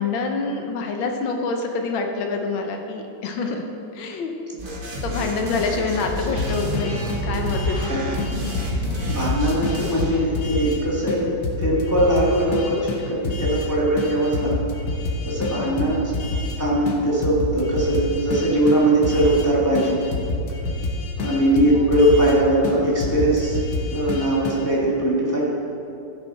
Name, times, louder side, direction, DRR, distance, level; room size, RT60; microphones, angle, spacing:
voice 1, 0.0-3.6 3.9-4.3 5.0-8.2 15.5-15.9 21.7-21.9, left 4 dB, 85° left, 3 dB, 1.6 m, -27 dB
sound 1, 4.6-10.2, equal, 30° right, 1.4 m, -29 dB
sound 2, 6.3-7.9 8.2-10.8 11.1-11.2 11.4-13.7 14.0-16.6 16.9-19.5 19.7-22.4 22.6-24.7, left 2 dB, 65° left, 1.6 m, -28 dB
voice 2, 9.0-11.3 11.6-14.5 15.2-16.0 16.6-20.0 21.2-23.6 23.9-25.5, right 1 dB, 10° left, -6 dB, 1.8 m, -20 dB
15.5 x 6.7 x 4.2 m, 2.8 s
omnidirectional pair, 2.1 m